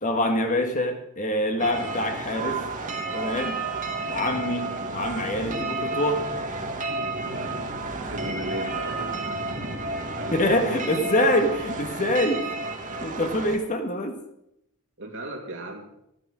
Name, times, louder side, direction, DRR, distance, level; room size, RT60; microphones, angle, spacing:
voice 1, 0.0-2.6 3.1-3.6 4.1-6.3 10.3-12.5 13.0-14.2, left 1 dB, 35° left, 5 dB, 1.5 m, -25 dB
sound 1, 1.6-13.6, right 2 dB, 35° right, 1.7 m, -31 dB
voice 2, 7.1-7.6 8.1-9.2 10.2-11.0 15.0-15.9, right 2 dB, 55° right, 2 dB, 2.6 m, -36 dB
14.0 x 9.9 x 6.2 m, 0.81 s
head